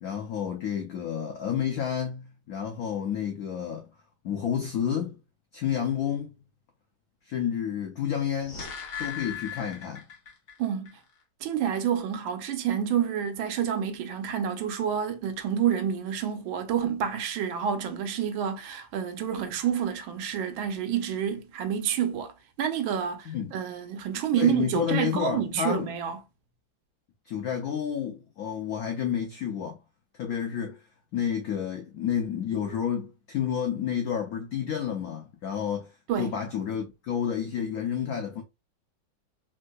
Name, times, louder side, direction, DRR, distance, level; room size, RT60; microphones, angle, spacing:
voice 1, 0.0-3.9 4.2-5.2 5.5-6.3 7.2-8.7 9.0-10.0 23.3-23.6 24.3-25.9 27.2-29.8 30.2-30.8 31.1-38.4, left 8 dB, 85° left, 0.8 m, -30 dB
sound 1, 8.1-10.6 10.9-11.0, left 7 dB, 55° left, 1.2 m, -38 dB
voice 2, 10.6-11.0 11.4-26.2 36.1-36.4, right 8 dB, 80° right, 1.4 m, -28 dB
3.6 x 2.7 x 2.2 m
omnidirectional pair, 2.1 m